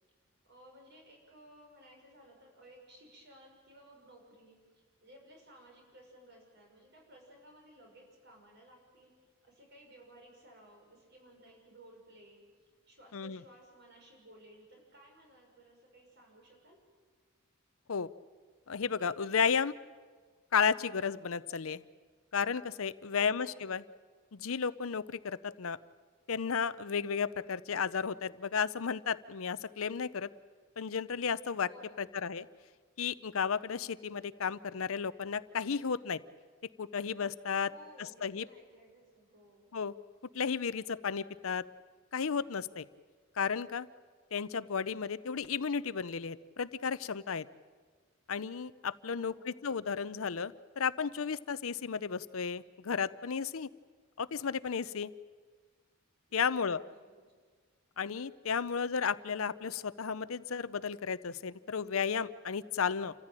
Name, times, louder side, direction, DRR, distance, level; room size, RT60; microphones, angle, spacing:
voice 1, 0.4-16.9 23.1-23.9 31.6-32.1 37.6-39.7 49.0-49.7 56.3-57.4, right 1 dB, 55° right, 1 dB, 6.2 m, -58 dB
voice 2, 18.7-19.7 20.5-21.8 22.3-23.8 24.3-25.8 26.3-30.3 30.8-31.7 32.2-32.5 33.0-36.2 36.8-37.7 38.2-38.4 39.7-39.9 40.3-41.6 42.1-42.9 43.4-43.9 44.3-47.5 48.3-53.7 54.2-55.1 56.3-56.8 58.0-63.1, left 6 dB, 80° left, 16 dB, 0.7 m, -33 dB
28.5 x 14.5 x 9.0 m, 1.5 s
head